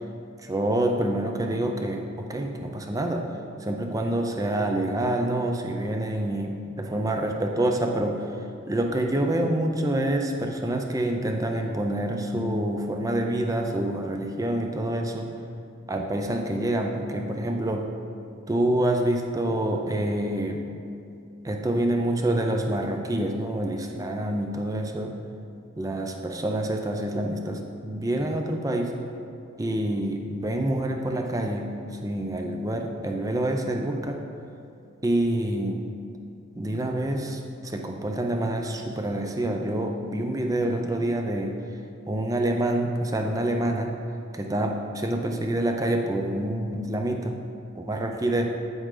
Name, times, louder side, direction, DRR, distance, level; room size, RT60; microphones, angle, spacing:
voice 1, 0.4-3.3 3.6-8.3 8.7-15.3 15.9-17.9 18.5-20.6 21.4-25.1 25.8-28.9 29.6-34.2 35.0-35.9 36.6-41.6 42.1-43.9 44.3-47.3 47.8-48.5, right 1 dB, 15° right, 3 dB, 0.4 m, -27 dB
8.0 x 7.7 x 3.8 m, 2.5 s
head